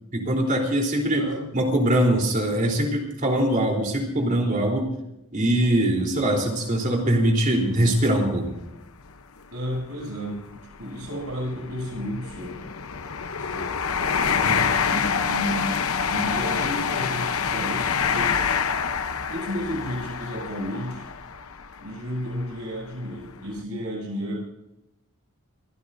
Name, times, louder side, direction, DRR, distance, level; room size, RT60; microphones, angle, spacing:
voice 1, 0.1-4.9 5.3-8.5 14.4-14.6, right 1 dB, 35° right, 1 dB, 3.6 m, -22 dB
voice 2, 1.1-1.5 9.5-12.7 13.3-13.7 14.9-15.8 16.1-18.4 19.3-21.1 21.8-24.4, equal, 75° right, -1 dB, 7.9 m, -32 dB
sound 1, 6.5-6.7 7.2-7.3 8.5-8.6 8.9-9.1 9.8-22.5 23.0-23.2, left 6 dB, 65° left, 0.9 m, -27 dB
26.0 x 15.5 x 2.7 m, 0.87 s
head